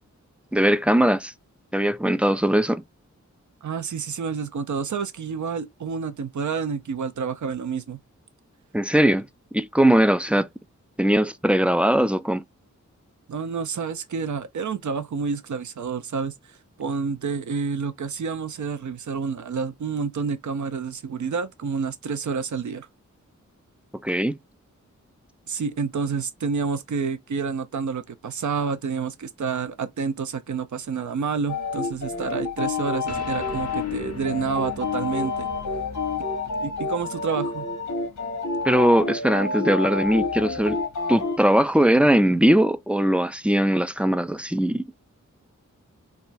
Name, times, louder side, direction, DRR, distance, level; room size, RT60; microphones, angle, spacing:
voice 1, 0.5-1.3 1.7-2.8 8.7-9.3 9.5-10.5 11.0-12.4 24.0-24.4 38.6-40.8 41.1-44.9, equal, 5° right, 0.3 m, -20 dB
voice 2, 3.6-8.0 13.3-22.9 25.5-35.5 36.6-37.6, right 5 dB, 70° right, 0.6 m, -29 dB
sound 1, 31.5-41.4, left 4 dB, 80° left, 1.1 m, -29 dB
sound 2, 33.1-39.8, left 5 dB, 55° left, 0.6 m, -41 dB
3.4 x 2.3 x 2.5 m
cardioid pair, 45°, 31 cm